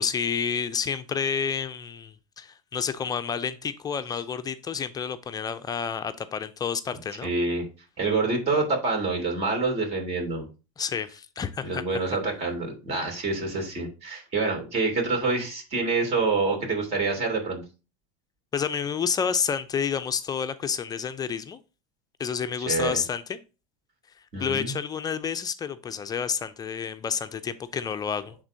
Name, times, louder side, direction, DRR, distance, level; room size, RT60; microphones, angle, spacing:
voice 1, 0.0-7.3 10.8-11.8 18.5-21.6 22.2-23.4 24.4-28.4, left 6 dB, 20° left, 0.5 m, -29 dB
voice 2, 7.2-7.7 8.0-10.5 11.6-17.6 22.7-23.0 24.3-24.7, right 3 dB, 40° right, 3.1 m, -27 dB
11.0 x 3.7 x 2.7 m
hypercardioid pair, 100°, 17 cm